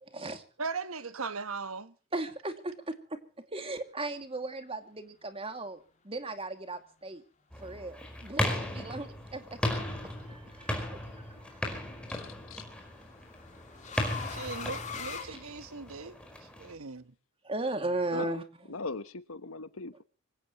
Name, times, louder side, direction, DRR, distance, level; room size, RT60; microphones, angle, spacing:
voice 1, 0.0-0.4 2.1-5.8 6.0-7.2 7.6-9.6 10.3-11.6 15.2-15.4 17.4-18.4, right 2 dB, 25° right, 2.4 m, -37 dB
voice 2, 0.6-1.9 14.3-17.1, right 4 dB, 90° right, 1.3 m, -39 dB
sound 1, 7.5-16.7, left 1 dB, 5° left, 4.9 m, -36 dB
sound 2, 10.3-10.7 12.1-16.1, left 6 dB, 35° left, 3.1 m, -42 dB
voice 3, 12.1-12.6 18.1-18.4 18.7-20.0, left 3 dB, 80° left, 1.2 m, -39 dB
25.0 x 16.5 x 3.1 m
head